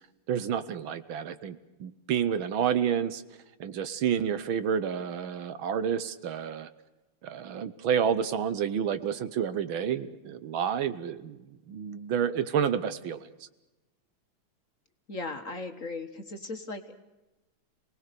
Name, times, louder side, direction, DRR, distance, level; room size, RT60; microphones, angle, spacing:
voice 1, 0.3-3.2 3.6-6.7 7.2-13.3, right 8 dB, 70° right, 13 dB, 1.7 m, -29 dB
voice 2, 15.1-17.0, left 3 dB, 40° left, 6 dB, 1.4 m, -37 dB
28.0 x 19.0 x 6.7 m, 1.0 s
omnidirectional pair, 2.4 m